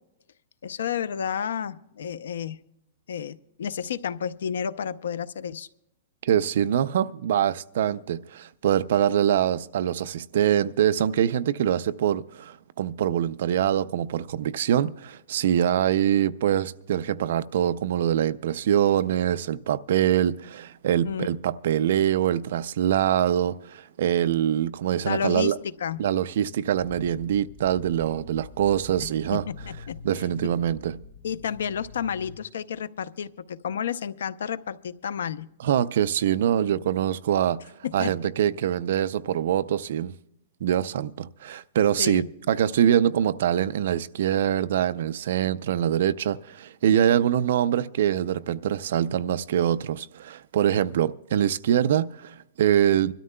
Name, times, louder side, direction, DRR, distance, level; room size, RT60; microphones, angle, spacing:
voice 1, 0.6-2.6 3.1-5.7 21.0-21.3 25.0-26.0 29.0-30.0 31.2-35.5 37.8-38.1 42.0-42.3, left 7 dB, 85° left, 0.6 m, -31 dB
voice 2, 6.2-25.6 26.0-29.4 30.0-30.9 35.6-37.6 37.9-40.1 40.6-53.1, right 10 dB, 50° right, 0.4 m, -24 dB
sound 1, 26.7-32.4, left 5 dB, 25° left, 0.8 m, -45 dB
25.5 x 13.0 x 2.2 m
hypercardioid pair, 180°, 0 cm